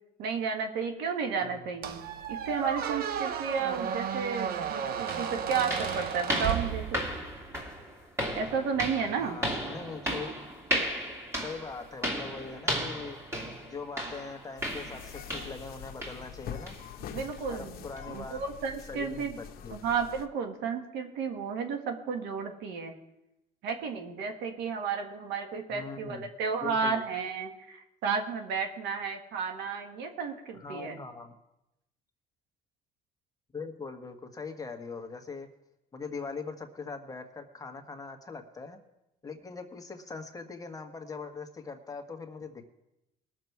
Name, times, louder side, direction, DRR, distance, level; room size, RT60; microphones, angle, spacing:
voice 1, 0.2-7.0 8.3-9.4 17.1-19.4 19.7-22.9 23.6-31.0, right 5 dB, 85° right, 4 dB, 1.7 m, -33 dB
Squeak, 1.8-7.3, right 8 dB, 65° right, 0.7 m, -33 dB
Walk - Stairs, 4.5-4.6 5.1-15.7 16.0-16.3 16.7-16.8 17.3-17.4 18.0-18.1, equal, 15° right, 2.7 m, -35 dB
voice 2, 9.2-10.4 11.4-13.2 13.6-16.7 17.5-18.4 18.9-19.9 25.7-26.3 26.6-27.0 30.5-31.3 33.5-35.5 35.9-38.8 39.2-42.7, left 4 dB, 20° left, 4 dB, 1.4 m, -41 dB
sound 1, 14.6-20.3, left 9 dB, 65° left, 0.9 m, -44 dB
20.5 x 6.8 x 4.7 m, 0.89 s
cardioid pair, 110°, 17 cm